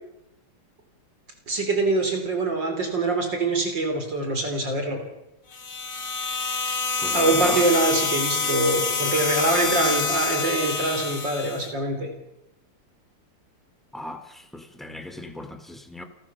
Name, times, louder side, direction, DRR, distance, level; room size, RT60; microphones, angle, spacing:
voice 1, 1.5-5.0 7.1-12.1, right 2 dB, 55° right, 4.3 m, -24 dB
sound 1, 5.5-11.7, left 4 dB, 30° left, 1.1 m, -27 dB
voice 2, 7.0-7.7 13.9-16.0, left 1 dB, ahead, 2.3 m, -36 dB
29.5 x 17.5 x 7.3 m
omnidirectional pair, 2.4 m